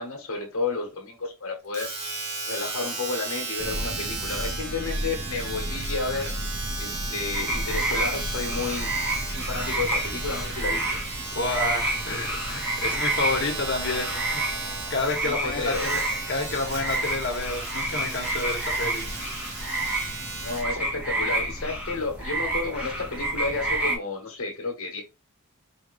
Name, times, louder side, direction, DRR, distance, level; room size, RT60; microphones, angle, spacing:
voice 1, 0.0-1.9 2.4-6.3 6.8-8.9 9.3-11.0 15.2-15.9 20.4-25.0, left 3 dB, 75° left, 1.2 m, -31 dB
Domestic sounds home sounds, 1.7-20.7 21.4-21.5, right 3 dB, 50° right, 1.4 m, -35 dB
Thunder, 3.6-11.5, equal, 30° right, 0.5 m, -35 dB
sound 1, 7.3-24.0, right 2 dB, 5° right, 1.1 m, -30 dB
voice 2, 11.3-14.4 14.9-19.1, left 3 dB, 55° left, 1.2 m, -29 dB
4.7 x 2.6 x 3.1 m
head